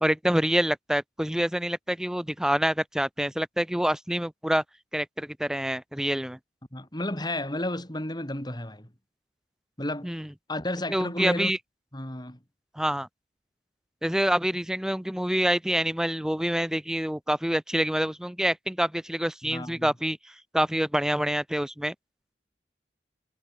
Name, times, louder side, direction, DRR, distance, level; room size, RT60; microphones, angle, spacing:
voice 1, 0.0-4.6 4.9-6.4 10.0-10.3 10.9-11.6 12.8-13.1 14.0-20.2 20.5-21.9, equal, 5° right, 0.8 m, -26 dB
voice 2, 6.7-8.9 9.8-10.1 10.5-11.5 11.9-12.4 19.4-19.9, left 1 dB, 25° left, 5.5 m, -32 dB
head